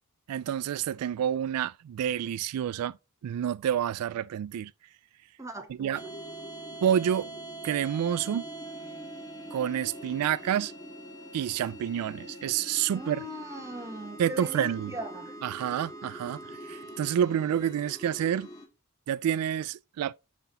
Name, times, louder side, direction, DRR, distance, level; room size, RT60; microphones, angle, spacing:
voice 1, 0.3-3.0 3.2-4.7 5.8-6.0 6.8-7.3 7.6-8.5 9.5-10.7 11.3-13.2 14.2-14.9 15.4-18.5 19.1-20.1, right 9 dB, 85° right, 0.3 m, -28 dB
voice 2, 5.4-6.1 12.9-15.4, right 1 dB, 15° right, 1.1 m, -40 dB
sound 1, 5.9-18.7, right 1 dB, 20° left, 1.6 m, -43 dB
5.9 x 5.7 x 3.9 m
head